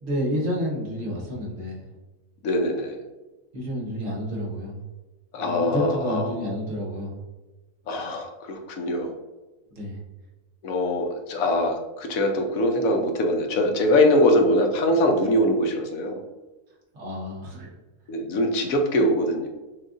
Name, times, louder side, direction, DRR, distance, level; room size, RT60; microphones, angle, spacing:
voice 1, 0.0-1.8 3.5-4.8 5.4-7.2 9.7-10.0 16.9-17.7, equal, 55° right, -3 dB, 1.4 m, -29 dB
voice 2, 2.4-3.0 5.3-6.4 7.9-9.1 10.6-16.2 18.1-19.5, left 1 dB, 70° left, 4 dB, 1.0 m, -23 dB
6.1 x 2.4 x 2.4 m, 1.1 s
omnidirectional pair, 1.6 m